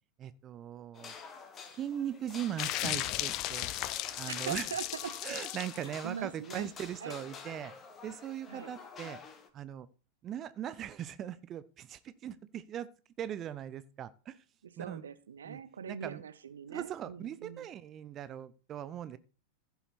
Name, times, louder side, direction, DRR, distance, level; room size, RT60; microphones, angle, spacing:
voice 1, 0.2-1.2 1.7-3.7 4.2-4.7 5.2-7.7 8.0-9.2 9.5-9.9 10.2-12.9 13.2-14.4 14.8-15.0 15.4-15.6 15.9-16.2 16.7-19.2, right 10 dB, 30° right, 0.6 m, -40 dB
sound 1, 0.9-9.5, left 5 dB, 25° left, 1.4 m, -48 dB
sound 2, 2.6-5.8, left 15 dB, 40° left, 0.5 m, -36 dB
voice 2, 4.0-5.2 5.8-6.7 7.0-7.2 8.5-8.7 14.8-17.7, right 7 dB, 65° right, 0.8 m, -42 dB
15.0 x 5.8 x 4.3 m
figure-of-eight pair, 90°, 0 cm